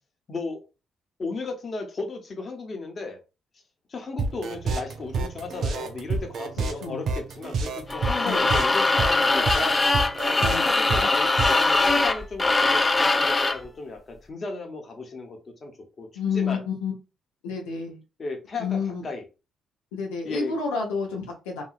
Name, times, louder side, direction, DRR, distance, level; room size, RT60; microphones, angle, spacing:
voice 1, 0.3-0.6 1.2-3.2 3.9-9.7 10.4-15.7 16.0-16.1 16.3-16.6 18.2-19.2 20.2-20.5, left 3 dB, 45° left, 3 dB, 1.0 m, -35 dB
sound 1, 4.2-11.8, right 4 dB, 65° right, 0.5 m, -28 dB
sound 2, 7.9-13.7, left 3 dB, 25° left, 0.4 m, -22 dB
voice 2, 8.2-8.6 10.4-11.1 16.1-16.9 17.4-18.0 18.6-19.0 19.9-21.6, left 5 dB, 85° left, -2 dB, 0.7 m, -30 dB
2.9 x 2.6 x 2.4 m, 0.30 s
hypercardioid pair, 45°, 0 cm